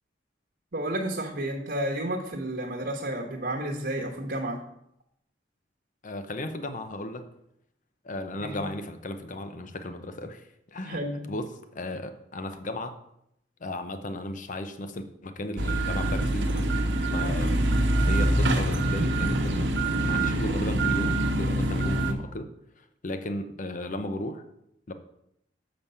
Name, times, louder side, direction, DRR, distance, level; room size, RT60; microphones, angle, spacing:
voice 1, 0.7-4.6 8.4-8.6 10.9-11.2 17.2-17.5, right 1 dB, 60° right, 0 dB, 1.1 m, -31 dB
voice 2, 6.0-7.3 8.0-11.0 11.3-13.0 13.6-16.7 17.1-19.7 20.0-22.5 22.8-24.4 24.9-25.0, left 1 dB, 45° left, 9 dB, 0.7 m, -35 dB
sound 1, 15.6-22.1, right 1 dB, 90° right, 1.0 m, -25 dB
7.3 x 5.2 x 5.5 m, 0.77 s
head